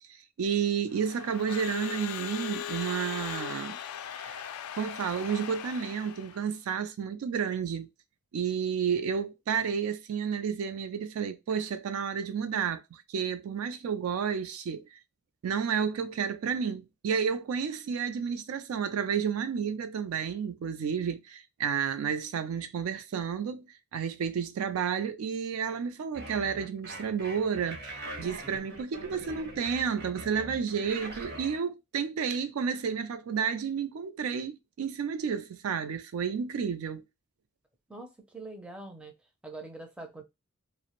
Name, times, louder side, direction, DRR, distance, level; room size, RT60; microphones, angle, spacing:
voice 1, 0.1-3.8 4.2-4.4 4.8-7.9 8.3-15.0 15.4-37.0, right 7 dB, 70° right, 0.3 m, -31 dB
Crowd / Alarm, 0.9-6.5, left 9 dB, 75° left, 0.3 m, -39 dB
sound 1, 26.1-31.6, right 1 dB, 50° right, 0.8 m, -42 dB
voice 2, 37.9-39.1 39.4-40.2, right 2 dB, 5° right, 0.4 m, -43 dB
2.4 x 2.0 x 2.9 m
head